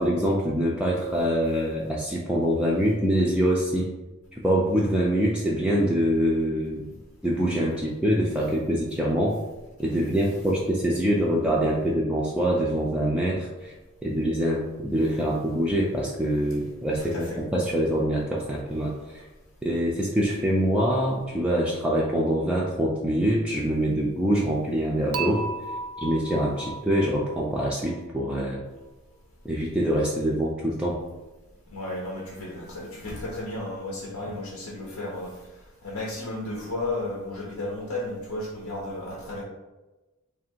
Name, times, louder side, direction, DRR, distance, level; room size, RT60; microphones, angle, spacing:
voice 1, 0.0-3.9 4.3-6.8 7.2-9.4 9.8-13.7 14.0-19.2 19.6-25.5 26.0-28.6 29.4-31.0, equal, 5° right, -4 dB, 0.3 m, -25 dB
voice 2, 17.0-17.4 31.7-35.4 35.8-39.4, left 2 dB, 90° left, -2 dB, 0.7 m, -33 dB
Dishes pots and pans / Chink clink, 25.1-28.3, right 3 dB, 75° right, 0.4 m, -35 dB
3.3 x 2.5 x 4.3 m, 1.1 s
head